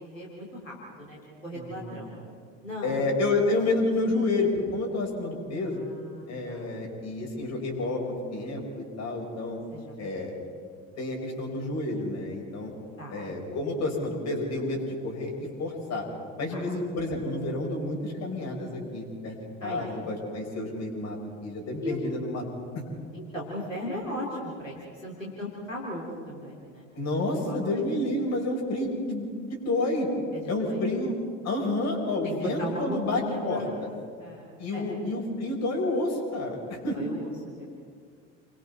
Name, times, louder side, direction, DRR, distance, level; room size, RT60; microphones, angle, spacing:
voice 1, 0.0-2.2 2.6-3.1 5.6-6.7 9.7-10.3 13.0-13.2 16.5-16.7 19.6-19.9 21.8-22.0 23.1-26.9 27.4-27.6 30.3-30.8 32.2-33.8 34.2-34.9 36.9-37.7, equal, 90° left, -4 dB, 3.5 m, -37 dB
voice 2, 1.5-2.1 2.8-5.8 6.3-9.6 10.0-10.3 11.0-12.7 13.1-16.1 16.4-19.3 19.6-22.5 26.9-30.1 30.5-31.1 31.4-33.9 34.6-37.0, left 2 dB, 45° left, 0 dB, 6.6 m, -29 dB
29.5 x 24.0 x 4.3 m, 2.1 s
figure-of-eight pair, 60°, 38 cm